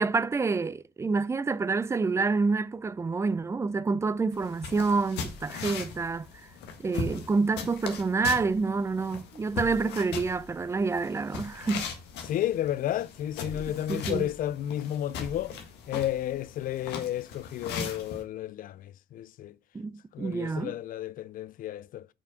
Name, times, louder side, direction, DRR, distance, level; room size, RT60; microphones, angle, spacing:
voice 1, 0.0-6.3 6.8-11.9 13.5-13.6 13.9-14.3 19.7-20.7, right 4 dB, 15° right, 0.4 m, -28 dB
sound 1, 4.3-18.2, left 5 dB, 85° left, 1.6 m, -39 dB
voice 2, 12.2-15.5 15.9-19.5 20.1-22.1, left 12 dB, 55° left, 0.4 m, -32 dB
5.9 x 4.6 x 5.8 m
cardioid pair, 110°, 17 cm